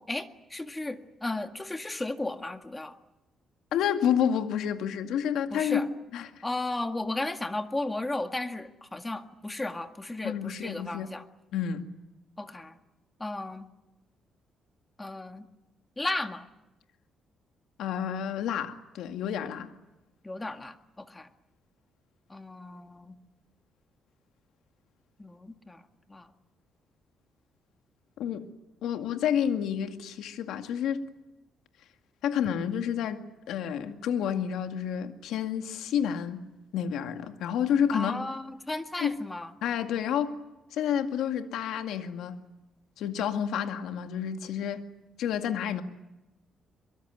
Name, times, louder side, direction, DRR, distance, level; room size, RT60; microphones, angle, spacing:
voice 1, 0.0-3.0 5.5-5.9 6.4-11.2 12.4-12.8 13.2-13.7 15.0-15.5 16.0-16.5 20.2-21.3 22.3-23.2 25.2-25.8 26.1-26.3 37.9-39.5, left 2 dB, 15° left, 1.9 m, -34 dB
voice 2, 3.7-6.4 10.2-11.1 11.5-11.8 17.8-19.7 28.2-28.4 28.8-31.0 32.2-36.4 36.7-38.2 39.0-39.2 39.6-40.3 40.7-42.4 43.0-44.8 45.2-45.8, left 8 dB, 85° left, 2.2 m, -29 dB
23.5 x 23.5 x 9.5 m
cardioid pair, 90°, 0 cm